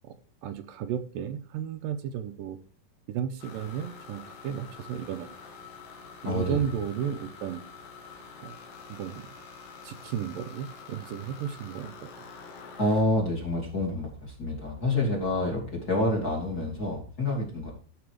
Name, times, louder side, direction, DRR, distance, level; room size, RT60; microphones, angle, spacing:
voice 1, 0.4-2.6 3.1-5.4 6.2-7.6 8.4-8.6 8.9-9.3 9.8-12.3, right 9 dB, 80° right, 8 dB, 2.3 m, -34 dB
sound 1, 3.4-13.0, left 5 dB, 70° left, 3.4 m, -46 dB
voice 2, 6.2-6.6 12.8-17.7, left 1 dB, 30° left, 0 dB, 2.7 m, -28 dB
13.0 x 6.0 x 4.8 m, 0.40 s
omnidirectional pair, 4.2 m